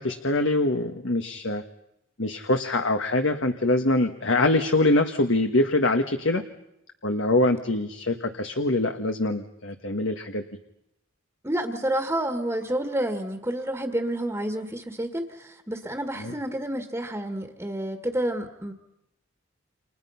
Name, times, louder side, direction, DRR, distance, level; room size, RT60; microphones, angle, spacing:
voice 1, 0.0-1.6 2.2-6.4 7.0-10.4 16.2-16.3, left 2 dB, 65° left, 6 dB, 1.5 m, -24 dB
voice 2, 11.4-18.7, right 1 dB, 15° right, 5 dB, 1.8 m, -29 dB
30.0 x 27.5 x 5.8 m, 0.82 s
head